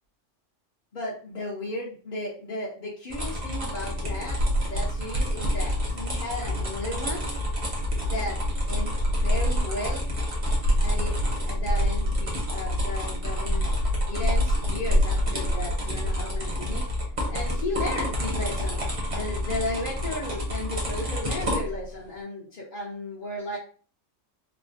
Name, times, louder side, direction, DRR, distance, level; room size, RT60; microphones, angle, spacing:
voice 1, 0.9-7.2 8.0-8.4 8.7-10.0 10.8-13.7 14.1-18.8 19.1-23.6, left 1 dB, 45° left, -6 dB, 0.7 m, -35 dB
sound 1, 3.1-21.9, left 1 dB, 35° right, 0.6 m, -31 dB
sound 2, 4.4-17.3, equal, 85° right, 1.1 m, -27 dB
3.2 x 2.1 x 2.5 m, 0.41 s
omnidirectional pair, 1.3 m